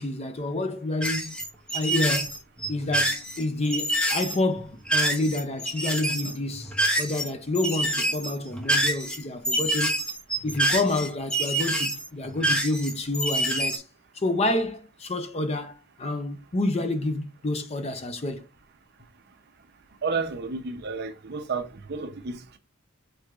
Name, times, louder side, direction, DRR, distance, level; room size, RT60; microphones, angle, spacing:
voice 1, 0.0-1.3 1.7-2.3 2.7-10.0 10.4-13.8 14.1-18.5, left 2 dB, 30° left, 0.5 m, -28 dB
sound 1, 1.0-7.3 7.5-13.8, right 1 dB, 5° left, 0.9 m, -27 dB
voice 2, 20.0-22.6, right 4 dB, 50° right, 0.6 m, -31 dB
4.7 x 4.5 x 2.4 m
head